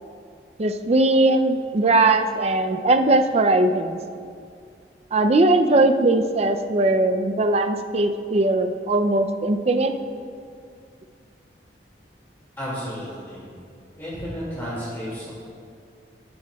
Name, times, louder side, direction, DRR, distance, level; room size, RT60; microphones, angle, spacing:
voice 1, 0.6-4.0 5.1-9.9, right 2 dB, 35° right, 7 dB, 0.5 m, -19 dB
voice 2, 12.6-13.4 14.0-15.3, equal, 15° left, -9 dB, 2.3 m, -32 dB
12.5 x 12.0 x 2.3 m, 2.3 s
head